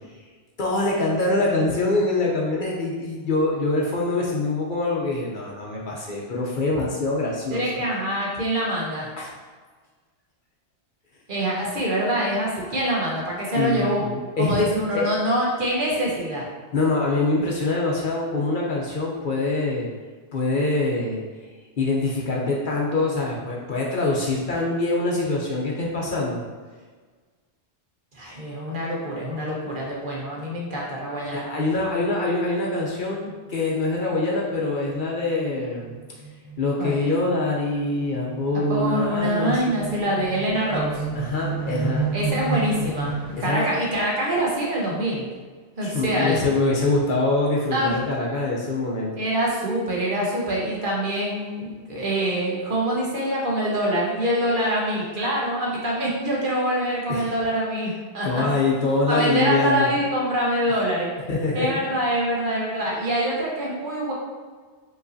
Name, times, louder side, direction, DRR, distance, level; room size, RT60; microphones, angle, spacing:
voice 1, 0.6-7.6 9.2-9.3 13.6-14.6 14.9-15.0 16.7-19.9 20.3-21.2 21.8-26.4 31.2-33.2 33.5-36.0 36.6-39.8 41.1-42.1 43.4-43.7 45.8-49.1 57.1-57.3 58.2-59.9 61.3-61.9, left 2 dB, 55° left, -3 dB, 0.8 m, -24 dB
voice 2, 7.5-9.1 11.3-14.0 14.4-16.4 28.1-31.5 36.8-36.9 38.7-41.0 42.1-45.2 45.8-46.4 47.7-48.0 49.2-58.4 59.1-61.1 61.5-64.1, equal, 50° right, -4 dB, 1.0 m, -25 dB
sound 1, 33.5-33.6 33.9-34.0 34.3-43.9, right 5 dB, 25° left, 1.5 m, -32 dB
5.1 x 3.1 x 2.6 m, 1.5 s
omnidirectional pair, 1.1 m